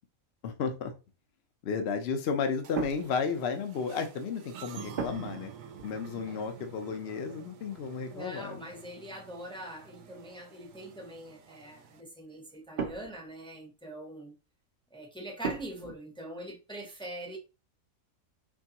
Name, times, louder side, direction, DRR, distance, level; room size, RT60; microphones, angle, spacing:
voice 1, 0.4-0.9 1.6-5.5 5.8-8.6, left 5 dB, 55° left, 0.8 m, -33 dB
sound 1, 2.6-12.0, right 8 dB, 75° right, 1.0 m, -49 dB
sound 2, 2.7-3.9 5.0-5.5 5.8-6.1 7.0-8.2 9.1-9.2 9.6-10.4 12.3-13.4 15.4-15.9, right 6 dB, 50° right, 0.8 m, -39 dB
voice 2, 8.1-14.3 14.9-17.4, right 1 dB, 5° left, 0.7 m, -43 dB
4.6 x 3.3 x 2.8 m
omnidirectional pair, 1.5 m